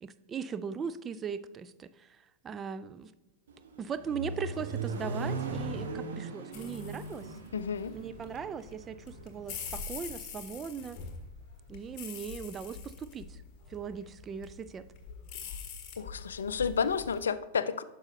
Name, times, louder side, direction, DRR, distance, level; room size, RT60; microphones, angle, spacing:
voice 1, 0.0-3.1 3.8-7.3 7.9-11.0 11.7-13.4 13.7-14.9, right 6 dB, 25° right, 13 dB, 0.4 m, -39 dB
Accelerating revving vroom, 3.5-9.5, right 3 dB, 60° right, 1.1 m, -38 dB
sound 1, 6.5-17.2, left 6 dB, 35° left, 1.3 m, -45 dB
voice 2, 7.5-8.0 15.5-15.6 16.0-17.8, left 6 dB, 70° left, 15 dB, 0.4 m, -31 dB
9.5 x 6.2 x 2.7 m, 1.1 s
figure-of-eight pair, 90°, 0 cm